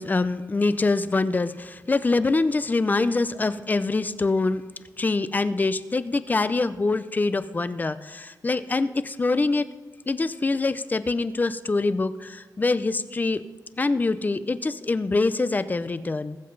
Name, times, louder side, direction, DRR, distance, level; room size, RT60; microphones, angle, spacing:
voice 1, 0.0-4.6 5.0-9.7 10.1-13.4 13.8-16.4, left 3 dB, 25° left, 14 dB, 0.5 m, -24 dB
20.5 x 7.5 x 4.0 m, 1.3 s
wide cardioid pair, 120°, 7 cm